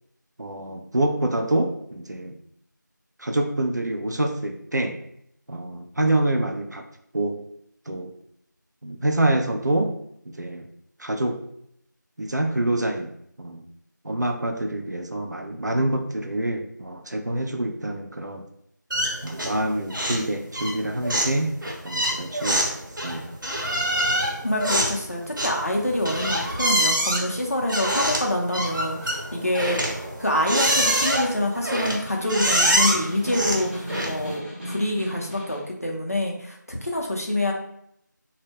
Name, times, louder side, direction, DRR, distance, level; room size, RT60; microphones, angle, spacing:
voice 1, 0.4-2.3 3.2-5.0 5.5-6.8 7.1-7.4 7.9-8.1 8.8-9.9 10.4-10.7 11.0-11.4 12.2-13.1 13.4-13.6 14.0-18.4 19.2-21.5 21.8-22.8 23.0-23.3, right 1 dB, 60° right, 4 dB, 0.4 m, -26 dB
sound 1, 18.9-19.6 19.9-20.3 20.5-34.4, right 1 dB, 85° right, 0.8 m, -25 dB
voice 2, 24.4-29.8 30.2-37.5, left 1 dB, 50° left, 0 dB, 0.5 m, -26 dB
Snare drum, 32.0-35.7, equal, 35° right, 0.9 m, -36 dB
2.1 x 2.0 x 3.3 m, 0.73 s
figure-of-eight pair, 180°, 10 cm